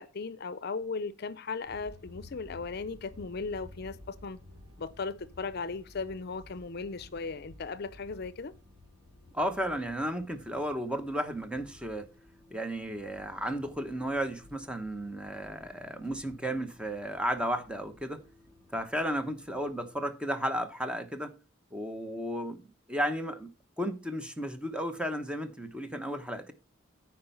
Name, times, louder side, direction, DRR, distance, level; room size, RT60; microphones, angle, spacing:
voice 1, 0.0-4.4 4.8-8.5, left 4 dB, 55° left, 0.6 m, -37 dB
sound 1, 1.6-20.0, left 1 dB, 25° right, 2.6 m, -55 dB
voice 2, 9.3-12.1 12.5-18.2 18.7-21.3 21.7-22.6 22.9-23.5 23.8-26.5, equal, 5° right, 0.9 m, -33 dB
9.5 x 4.6 x 5.7 m
head